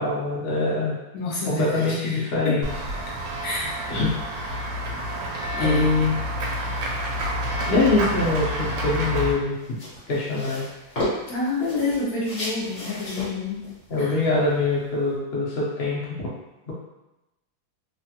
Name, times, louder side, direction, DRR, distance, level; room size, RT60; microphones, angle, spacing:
voice 1, 0.0-1.0 1.4-2.7 3.9-4.1 5.6-6.1 7.7-9.8 10.1-10.7 13.9-16.3 16.7-16.8, left 3 dB, 85° left, -5 dB, 0.5 m, -23 dB
voice 2, 1.1-2.6 2.9-3.0 3.4-3.8 5.6-5.9 11.3-13.7 14.0-14.3, left 3 dB, 65° left, -5 dB, 0.9 m, -29 dB
Run / Walk footsteps / Bell, 2.6-9.3, equal, 75° right, 1.2 m, -28 dB
sound 1, 6.6-15.2, left 1 dB, 45° left, 1.4 m, -36 dB
3.2 x 2.2 x 2.8 m, 0.96 s
omnidirectional pair, 2.2 m